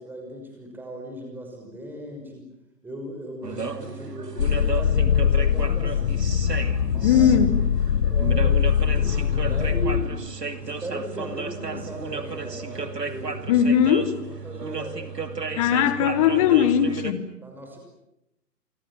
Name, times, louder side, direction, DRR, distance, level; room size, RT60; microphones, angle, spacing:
voice 1, 0.0-2.5 2.8-6.3 6.8-7.3 8.0-8.7 8.9-13.3 14.3-15.1 15.5-16.4 17.4-17.8, equal, 5° right, 5.9 m, -37 dB
sound 1, 3.4-17.1, right 4 dB, 75° right, 2.8 m, -33 dB
sound 2, 4.4-10.0, left 8 dB, 40° left, 1.5 m, -22 dB
voice 2, 7.0-7.6 13.5-14.1 15.6-17.3, left 9 dB, 20° left, 1.6 m, -19 dB
28.0 x 25.5 x 7.6 m
figure-of-eight pair, 140°, 49 cm